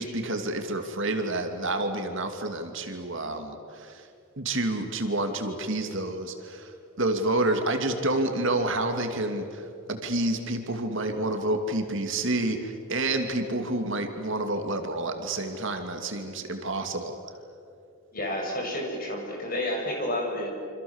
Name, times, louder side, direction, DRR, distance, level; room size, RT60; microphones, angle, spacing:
voice 1, 0.0-4.1 4.4-6.7 7.0-17.2, right 2 dB, 55° right, 5 dB, 2.5 m, -29 dB
voice 2, 18.1-20.6, left 1 dB, 40° left, 1 dB, 6.6 m, -30 dB
28.0 x 26.5 x 7.2 m, 2.5 s
head